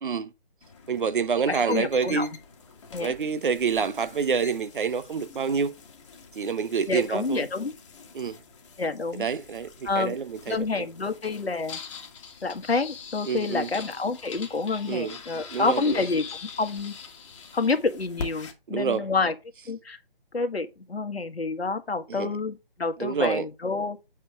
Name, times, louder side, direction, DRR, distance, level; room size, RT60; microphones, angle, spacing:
sound 1, 0.6-18.5, left 5 dB, 30° left, 1.5 m, -44 dB
voice 1, 0.9-2.3 3.0-5.7 6.4-7.5 8.1-8.4 9.2-10.9 13.3-13.7 14.9-15.2 15.5-16.0 18.7-19.1 22.1-22.3 23.0-23.5, right 6 dB, 55° right, 0.9 m, -27 dB
voice 2, 1.5-2.3 2.9-3.1 6.9-7.7 8.8-9.3 9.8-10.2 10.5-11.8 12.4-16.2 16.6-16.9 17.5-19.3 19.7-20.0 20.3-24.0, left 4 dB, 85° left, 1.5 m, -28 dB
8.4 x 4.5 x 4.7 m
figure-of-eight pair, 155°, 30 cm